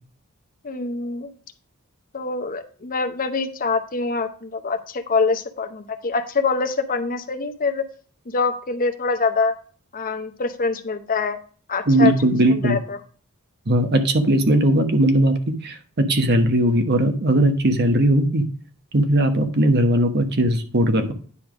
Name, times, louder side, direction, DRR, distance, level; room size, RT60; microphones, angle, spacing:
voice 1, 0.6-1.3 2.1-7.8 8.3-9.6 9.9-11.4 11.7-12.1 12.5-13.0, left 4 dB, 40° left, 8 dB, 0.8 m, -24 dB
voice 2, 11.9-12.8 13.7-15.3 15.6-18.4 18.9-21.1, right 1 dB, 50° right, 6 dB, 1.1 m, -18 dB
9.8 x 3.4 x 6.0 m, 0.43 s
head